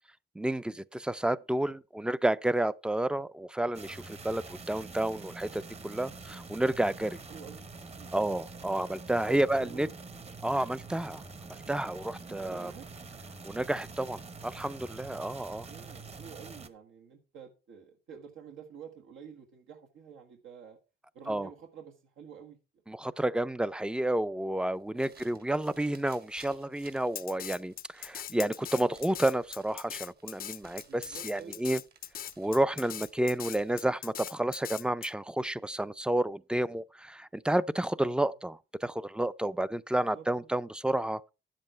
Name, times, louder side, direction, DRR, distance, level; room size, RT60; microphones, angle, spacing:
voice 1, 0.4-7.2 8.1-9.9 10.4-11.2 11.7-12.7 13.4-15.7 21.3-21.5 22.9-31.8 32.4-41.3, right 1 dB, 5° right, 0.4 m, -30 dB
sound 1, 3.7-16.7, right 4 dB, 30° right, 1.2 m, -46 dB
voice 2, 7.3-8.1 8.5-8.8 9.3-9.9 12.4-12.9 15.4-20.8 21.1-22.6 24.9-25.2 30.8-31.8 38.1-38.2 40.1-40.5, right 7 dB, 80° right, 1.7 m, -49 dB
sound 2, 24.7-34.0, right 5 dB, 50° right, 2.3 m, -59 dB
Drum kit, 27.2-35.1, left 10 dB, 50° left, 0.5 m, -40 dB
10.5 x 7.6 x 4.5 m
cardioid pair, 90°, 20 cm